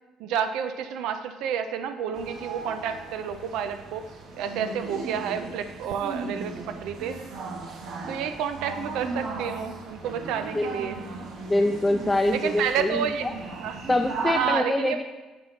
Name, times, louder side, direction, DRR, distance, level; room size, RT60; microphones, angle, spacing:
voice 1, 0.2-4.0 4.3-7.2 8.1-11.0 12.3-13.3 13.6-13.8 14.2-15.0, right 8 dB, 80° right, 9 dB, 0.4 m, -30 dB
sound 1, 2.1-14.5, right 3 dB, 65° right, 1.0 m, -37 dB
voice 2, 11.5-13.3 13.9-15.0, left 2 dB, 15° left, 4 dB, 0.3 m, -24 dB
7.2 x 3.8 x 5.7 m, 1.2 s
cardioid pair, 110°, 0 cm